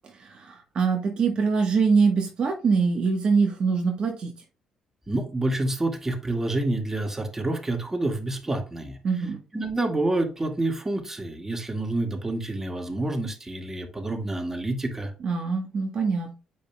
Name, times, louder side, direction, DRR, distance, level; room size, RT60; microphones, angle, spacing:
voice 1, 0.2-4.3 9.0-9.4 15.2-16.3, right 5 dB, 50° right, 1.2 m, -23 dB
voice 2, 5.1-9.0 9.5-15.1, right 2 dB, 20° right, 1.9 m, -28 dB
8.3 x 5.4 x 2.3 m
hypercardioid pair, 50°, 2 cm